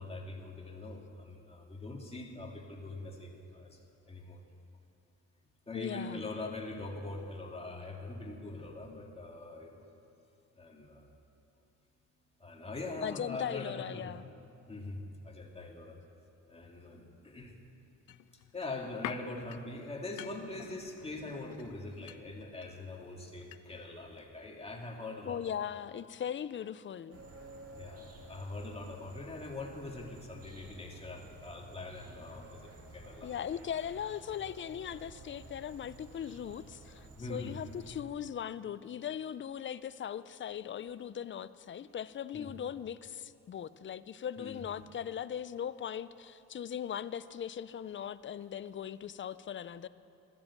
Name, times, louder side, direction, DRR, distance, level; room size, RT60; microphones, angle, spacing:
voice 1, 0.0-3.8 4.1-4.4 5.7-9.9 10.5-11.1 12.4-14.2 14.7-16.0 16.5-17.6 18.5-25.4 27.7-33.3 37.1-37.6 42.3-42.5 44.4-44.6, left 2 dB, 20° left, 2.4 m, -43 dB
voice 2, 5.7-6.2 13.0-14.2 25.3-27.2 33.2-49.9, left 9 dB, 40° left, 0.5 m, -39 dB
sound 1, 18.1-23.9 24.2-24.3, left 14 dB, 85° left, 0.5 m, -48 dB
sound 2, 27.1-38.0, right 2 dB, 50° right, 2.3 m, -53 dB
14.0 x 13.5 x 7.3 m
cardioid pair, 90°, 30 cm